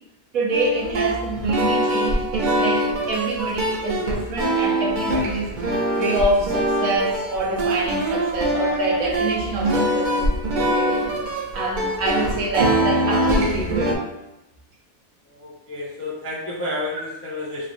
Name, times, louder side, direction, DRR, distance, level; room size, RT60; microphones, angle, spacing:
voice 1, 0.3-5.5 6.0-11.2 11.5-14.0, right 2 dB, 80° right, -3 dB, 1.3 m, -26 dB
sound 1, 0.5-13.9, right 1 dB, 60° right, 0.5 m, -23 dB
voice 2, 15.3-17.7, left 2 dB, 20° left, -7 dB, 0.4 m, -31 dB
3.3 x 2.3 x 3.8 m, 0.93 s
omnidirectional pair, 1.5 m